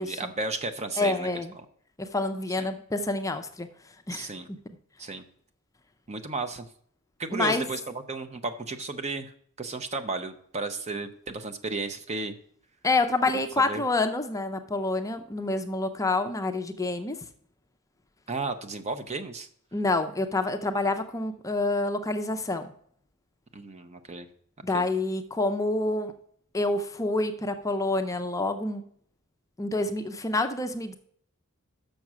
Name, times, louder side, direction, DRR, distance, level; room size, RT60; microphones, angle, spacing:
voice 1, 0.0-1.6 2.5-2.7 4.1-4.5 5.0-5.2 6.1-6.7 7.2-12.4 13.3-13.8 18.3-19.5 23.5-24.3 24.7-24.9, right 3 dB, 30° right, 9 dB, 0.6 m, -34 dB
voice 2, 1.0-1.5 2.0-3.7 4.1-4.3 7.3-7.6 12.8-17.2 19.7-22.7 24.6-26.1 26.5-28.8 29.6-30.9, left 2 dB, 15° left, 7 dB, 0.5 m, -27 dB
6.5 x 6.0 x 6.1 m, 0.63 s
head